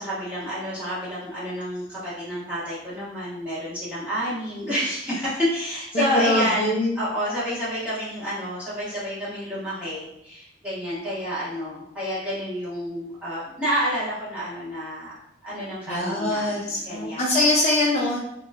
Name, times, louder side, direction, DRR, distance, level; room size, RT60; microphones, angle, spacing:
voice 1, 0.0-15.1 15.4-17.3, equal, 10° right, -11 dB, 1.1 m, -29 dB
voice 2, 5.9-7.0 15.9-18.2, left 1 dB, 40° left, -4 dB, 0.4 m, -23 dB
3.0 x 2.2 x 2.3 m, 0.76 s
head